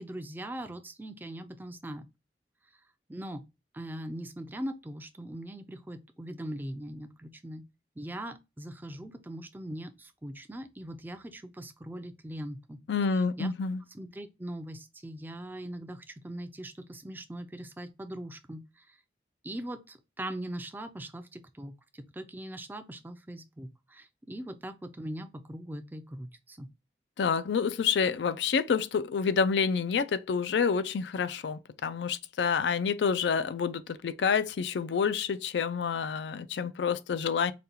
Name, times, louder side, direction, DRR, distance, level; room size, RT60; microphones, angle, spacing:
voice 1, 0.0-2.1 3.1-3.4 3.7-7.6 8.0-12.8 13.1-13.5 13.9-19.0 19.4-26.7, right 1 dB, 10° right, 0.4 m, -41 dB
voice 2, 12.9-13.8 27.2-37.5, left 6 dB, 80° left, 0.4 m, -28 dB
5.0 x 2.3 x 2.8 m
head